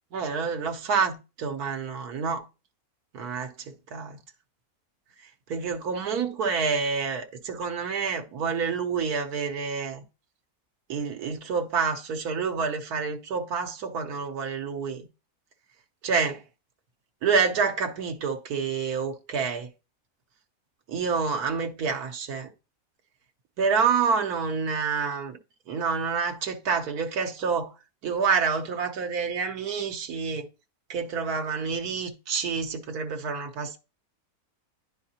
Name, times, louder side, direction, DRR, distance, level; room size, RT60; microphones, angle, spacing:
voice 1, 0.1-2.4 3.1-4.2 5.5-10.0 10.9-15.1 16.0-16.4 17.2-19.7 20.9-22.5 23.6-25.4 25.7-27.7 28.0-30.5 30.9-33.8, right 5 dB, 85° right, 1.4 m, -28 dB
10.5 x 4.4 x 2.8 m
omnidirectional pair, 1.6 m